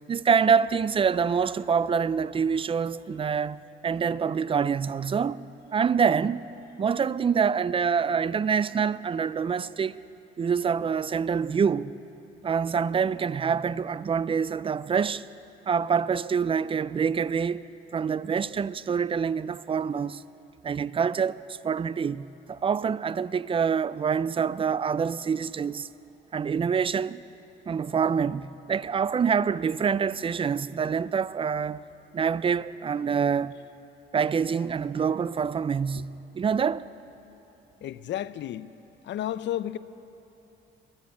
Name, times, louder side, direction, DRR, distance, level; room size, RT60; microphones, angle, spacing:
voice 1, 0.1-5.4 5.7-6.5 6.8-10.0 10.4-11.9 12.4-15.2 15.7-17.7 17.9-20.2 20.6-25.9 26.3-27.2 27.7-31.8 32.1-33.5 34.1-36.9, right 6 dB, 25° right, 0.4 m, -26 dB
voice 2, 37.8-38.7 39.0-39.8, left 12 dB, 65° left, 0.5 m, -32 dB
14.0 x 10.5 x 9.5 m
cardioid pair, 90°, 20 cm